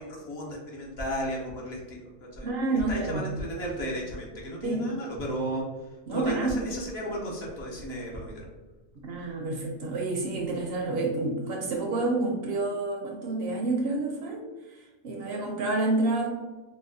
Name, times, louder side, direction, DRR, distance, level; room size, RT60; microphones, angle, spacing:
voice 1, 0.0-2.5 2.9-5.6 6.1-8.5, equal, 65° left, -2 dB, 1.0 m, -34 dB
voice 2, 2.4-3.3 4.6-4.9 6.1-6.6 9.0-16.3, right 2 dB, 65° right, 1 dB, 0.7 m, -29 dB
4.1 x 2.2 x 2.6 m, 1.2 s
omnidirectional pair, 1.2 m